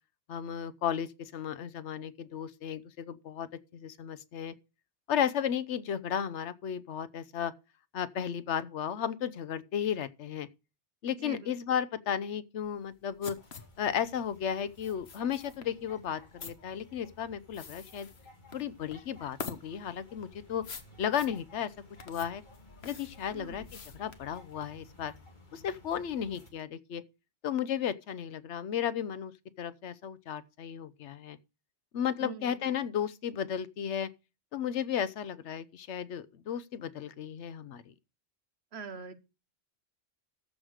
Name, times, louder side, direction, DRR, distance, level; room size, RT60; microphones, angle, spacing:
voice 1, 0.3-3.5 3.7-4.5 5.1-7.5 7.9-10.5 11.0-13.4 13.8-18.1 18.5-20.6 21.0-21.7 22.1-22.4 22.8-25.1 25.5-27.0 27.4-29.3 29.6-31.4 31.9-34.1 34.5-37.8, left 8 dB, 85° left, 1.1 m, -34 dB
voice 2, 11.2-11.5 23.3-23.7 32.2-32.8 38.7-39.1, right 5 dB, 65° right, 1.3 m, -43 dB
sound 1, 12.6-24.8, left 5 dB, 65° left, 1.4 m, -47 dB
sound 2, 13.4-26.5, left 1 dB, 45° left, 2.4 m, -56 dB
13.5 x 5.0 x 6.2 m
omnidirectional pair, 1.2 m